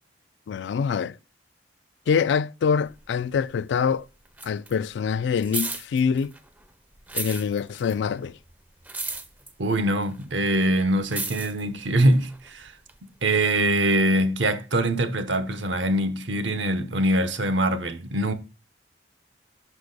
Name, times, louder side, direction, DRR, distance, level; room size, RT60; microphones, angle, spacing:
voice 1, 0.5-1.2 2.1-4.0 4.4-6.3 7.1-8.3, left 6 dB, 75° left, 0.3 m, -25 dB
sound 1, 2.9-3.9 4.1-6.6 7.0-13.0 13.6-13.7, right 3 dB, 10° right, 0.4 m, -35 dB
voice 2, 9.6-12.7 13.2-18.3, right 1 dB, 85° right, 0.9 m, -23 dB
6.0 x 4.7 x 3.9 m
head